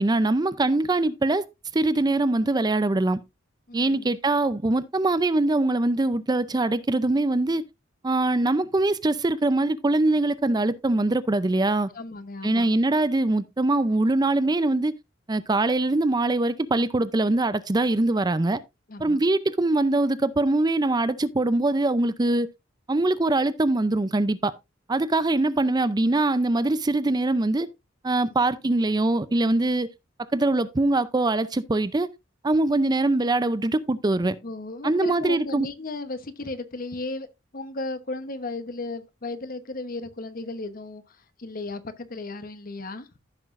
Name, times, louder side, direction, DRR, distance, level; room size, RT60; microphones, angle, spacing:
voice 1, 0.0-1.5 1.7-3.2 3.7-7.6 8.0-11.9 12.4-14.9 15.3-18.6 19.0-22.5 22.9-24.5 24.9-27.7 28.0-29.9 30.3-32.1 32.4-34.4 34.8-35.7, right 2 dB, 20° right, 0.5 m, -23 dB
voice 2, 3.7-4.1 11.9-12.7 18.9-19.2 28.3-28.4 34.4-37.3 37.5-41.0 41.4-43.1, left 2 dB, 45° left, 1.0 m, -35 dB
15.0 x 6.0 x 2.5 m
head